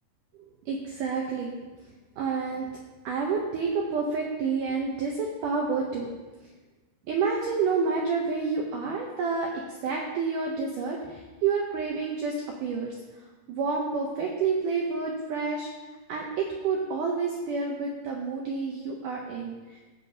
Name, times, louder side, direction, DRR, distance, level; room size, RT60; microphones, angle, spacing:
voice 1, 0.7-1.6 2.2-2.8 3.0-6.1 7.1-12.3 12.6-12.9 13.5-15.7 16.1-19.8, right 5 dB, 75° right, 0 dB, 1.9 m, -29 dB
16.5 x 5.7 x 2.8 m, 1.3 s
omnidirectional pair, 4.6 m